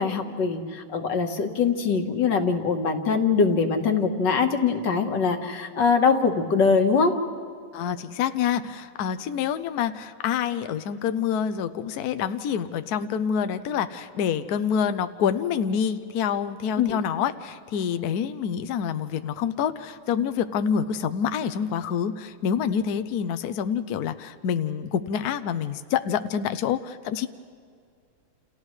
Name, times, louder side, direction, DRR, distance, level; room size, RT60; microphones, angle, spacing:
voice 1, 0.0-7.1 16.8-17.0, left 5 dB, 55° left, 5 dB, 1.9 m, -22 dB
voice 2, 7.7-27.3, left 8 dB, 75° left, 10 dB, 0.9 m, -27 dB
29.5 x 29.0 x 3.2 m, 2.2 s
omnidirectional pair, 2.4 m